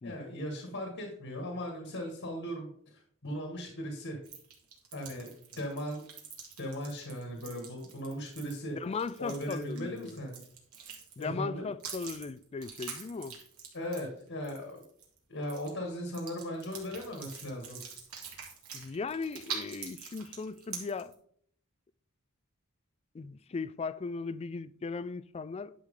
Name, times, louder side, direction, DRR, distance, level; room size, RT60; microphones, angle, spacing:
voice 1, 0.0-4.2 4.9-6.0 6.6-8.8 9.2-10.4 11.2-11.7 13.7-14.8 15.3-17.8, equal, 65° left, 1.9 m, -38 dB
sound 1, 4.2-11.4 11.8-15.2 15.4-15.7 16.1-21.1, right 6 dB, 85° right, 2.5 m, -45 dB
voice 2, 8.7-10.2 11.2-13.4 18.7-21.1 23.1-25.7, left 4 dB, 30° left, 0.3 m, -37 dB
10.5 x 6.5 x 3.8 m
head